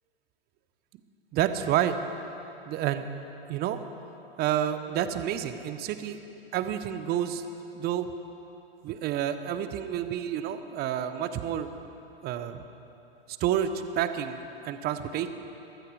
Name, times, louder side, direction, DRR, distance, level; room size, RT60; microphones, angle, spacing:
voice 1, 1.3-1.9 2.7-3.1 3.5-3.8 4.4-6.2 6.5-7.4 7.7-8.1 8.8-11.7 12.2-12.6 13.4-14.4 14.6-15.3, right 10 dB, 35° right, 10 dB, 0.9 m, -29 dB
19.5 x 14.0 x 4.8 m, 2.9 s
hypercardioid pair, 110°, 30 cm